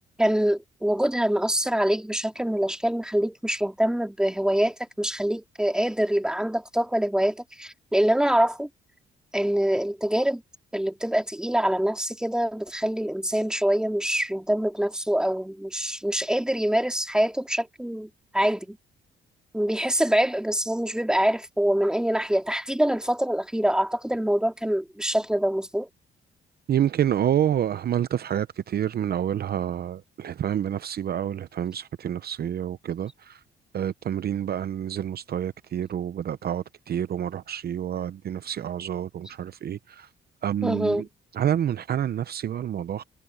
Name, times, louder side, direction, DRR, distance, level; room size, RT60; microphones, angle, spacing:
voice 1, 0.2-8.7 9.3-10.4 10.7-18.8 19.5-25.9 40.6-41.0, right 1 dB, 5° right, 2.6 m, -25 dB
voice 2, 26.7-33.4 33.7-40.1 40.4-41.1 41.3-43.0, right 10 dB, 50° right, 0.7 m, -28 dB
cardioid pair, 90°, 20 cm